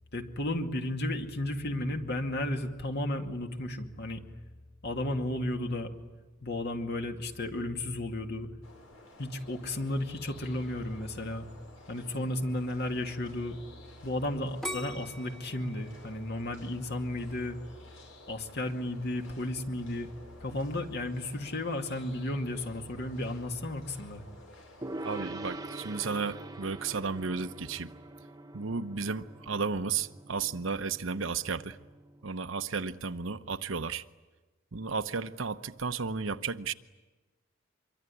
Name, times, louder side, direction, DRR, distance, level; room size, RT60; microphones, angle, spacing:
voice 1, 0.1-4.2 4.8-5.9 6.4-8.5 9.2-11.5 11.9-13.6 14.0-17.6 18.3-20.1 20.4-24.2, left 1 dB, 55° left, 2.3 m, -33 dB
sound 1, 8.6-25.2, left 1 dB, 85° left, 6.9 m, -54 dB
sound 2, 14.6-17.5 18.0-18.5, equal, ahead, 1.5 m, -41 dB
Gong, 24.8-32.3, right 2 dB, 20° right, 1.1 m, -44 dB
voice 2, 25.0-27.9 28.5-31.8 32.2-34.0 34.7-36.7, right 5 dB, 70° right, 0.9 m, -33 dB
25.5 x 23.5 x 9.9 m
head